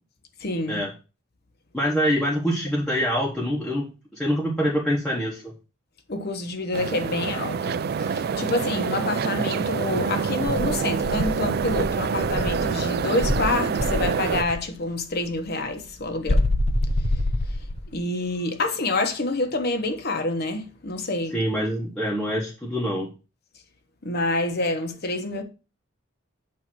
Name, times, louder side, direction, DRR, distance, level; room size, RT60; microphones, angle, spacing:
voice 1, 0.4-0.8 6.1-7.8 8.1-16.4 17.9-21.4 24.0-25.4, left 2 dB, 50° left, 1.1 m, -27 dB
voice 2, 1.7-5.5 21.3-23.1, equal, 5° left, 1.1 m, -25 dB
sound 1, 6.7-14.4, right 5 dB, 50° right, 0.4 m, -26 dB
Insect, 10.5-12.7 13.2-14.6 16.3-17.9, left 1 dB, 30° left, 0.6 m, -25 dB
8.5 x 2.9 x 6.1 m
head